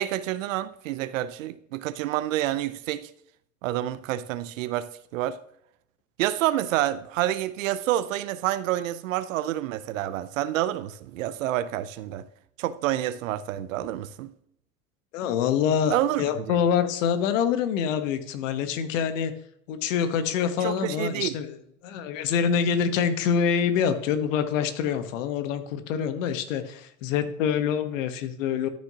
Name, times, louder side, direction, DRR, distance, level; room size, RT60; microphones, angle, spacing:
voice 1, 0.0-3.1 3.6-5.4 6.2-12.2 12.6-14.3 15.9-16.2 20.6-21.3, right 13 dB, 75° right, 0.7 m, -28 dB
voice 2, 15.1-19.3 19.7-21.6 21.8-28.7, left 7 dB, 70° left, 1.2 m, -26 dB
13.0 x 6.3 x 2.9 m
hypercardioid pair, 75°, 39 cm